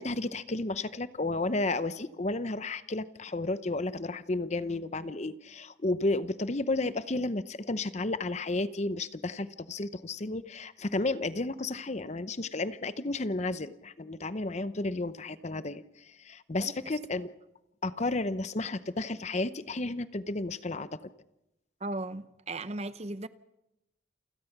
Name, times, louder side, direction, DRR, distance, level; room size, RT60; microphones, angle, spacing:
voice 1, 0.0-17.3 17.8-21.0, left 2 dB, 35° left, 0.7 m, -32 dB
voice 2, 21.8-23.3, right 2 dB, 30° right, 0.7 m, -36 dB
28.5 x 17.0 x 5.9 m
head